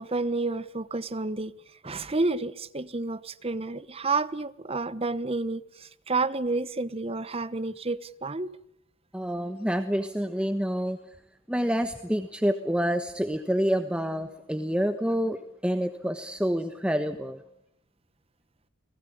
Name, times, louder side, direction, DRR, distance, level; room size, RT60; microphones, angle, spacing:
voice 1, 0.0-1.5 1.8-8.5, right 3 dB, 30° right, 1.1 m, -30 dB
voice 2, 9.1-11.0 11.5-17.4, equal, 5° right, 1.2 m, -28 dB
29.5 x 20.0 x 8.7 m
head